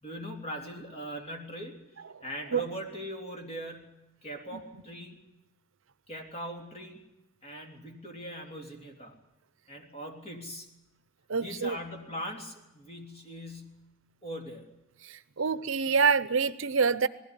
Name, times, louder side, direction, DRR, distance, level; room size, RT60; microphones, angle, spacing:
voice 1, 0.0-3.9 4.2-5.2 6.1-7.1 7.4-9.2 9.7-10.8 11.4-13.9 14.2-14.7, equal, 30° left, 2 dB, 3.4 m, -41 dB
voice 2, 11.3-11.8 15.0-17.1, right 5 dB, 65° right, 15 dB, 0.7 m, -26 dB
20.0 x 15.0 x 10.0 m, 0.96 s
head